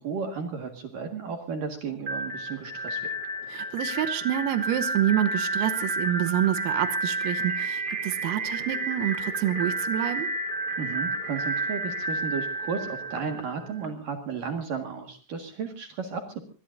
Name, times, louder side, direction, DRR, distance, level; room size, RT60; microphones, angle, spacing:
voice 1, 0.0-3.1 10.8-16.4, right 5 dB, 55° right, 5 dB, 2.8 m, -34 dB
sound 1, 2.0-13.9, right 2 dB, 20° right, 3.7 m, -31 dB
voice 2, 3.5-10.3, right 12 dB, 90° right, 11 dB, 3.7 m, -27 dB
25.0 x 22.0 x 2.6 m, 0.38 s
omnidirectional pair, 5.9 m